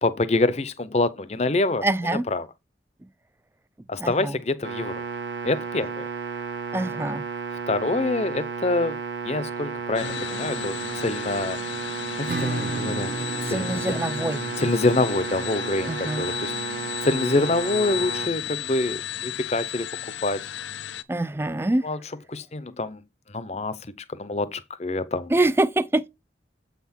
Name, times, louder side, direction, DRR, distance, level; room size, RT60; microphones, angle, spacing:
voice 1, 0.0-1.9 2.3-2.5 3.9-5.0 5.4-6.0 7.7-9.0 9.2-11.6 12.2-13.1 13.4-13.8 14.6-19.9 20.2-20.4 21.8-22.0 22.3-25.3, left 2 dB, 35° left, 0.7 m, -26 dB
voice 2, 1.8-2.3 4.0-4.4 6.7-7.2 13.5-14.4 15.9-16.3 21.1-21.9 25.3-26.1, right 2 dB, 15° right, 0.3 m, -25 dB
sound 1, 4.6-18.3, right 5 dB, 75° right, 1.4 m, -33 dB
sound 2, 9.9-21.0, left 10 dB, 85° left, 0.6 m, -34 dB
Acoustic guitar / Strum, 12.3-17.7, right 3 dB, 50° right, 0.7 m, -35 dB
8.1 x 5.9 x 4.3 m
head